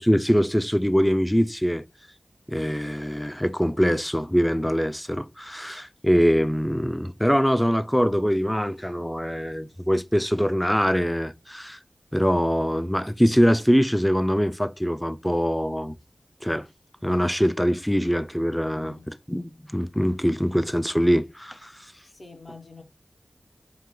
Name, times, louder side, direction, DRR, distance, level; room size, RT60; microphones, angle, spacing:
voice 1, 0.0-1.8 2.5-11.8 12.1-15.9 16.4-16.7 17.0-19.0 19.3-21.9, equal, 5° left, 0.3 m, -23 dB
voice 2, 18.7-19.1 22.0-22.8, left 3 dB, 65° left, 1.1 m, -46 dB
4.5 x 2.5 x 3.7 m
cardioid pair, 45°, 0 cm